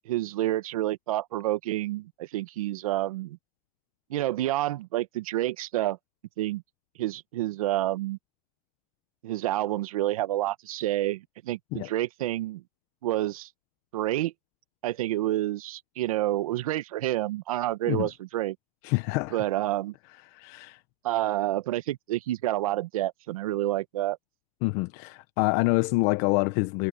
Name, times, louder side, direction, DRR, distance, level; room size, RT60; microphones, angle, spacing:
voice 1, 0.0-3.4 4.1-6.0 6.4-6.6 7.0-8.2 9.2-12.6 13.0-13.5 13.9-14.3 14.8-18.6 19.3-19.9 21.0-24.2, right 15 dB, 85° right, 1.3 m, -28 dB
voice 2, 18.8-19.4 20.3-20.8 24.6-26.9, left 24 dB, 60° left, 1.0 m, -26 dB
supercardioid pair, 120°, 18 cm